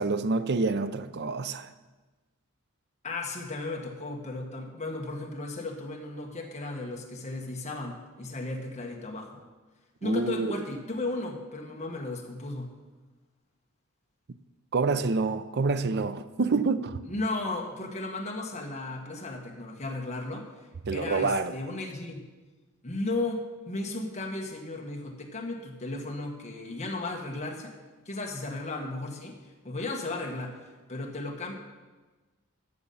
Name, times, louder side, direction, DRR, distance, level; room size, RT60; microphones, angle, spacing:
voice 1, 0.0-1.7 10.0-10.5 14.7-17.0 20.9-21.5, right 3 dB, 50° right, 0.5 m, -27 dB
voice 2, 3.0-9.4 10.0-12.7 17.1-20.5 20.9-22.2 22.8-27.7 28.0-29.4 29.6-31.5, left 2 dB, 30° left, 1.4 m, -35 dB
13.5 x 7.1 x 5.5 m
head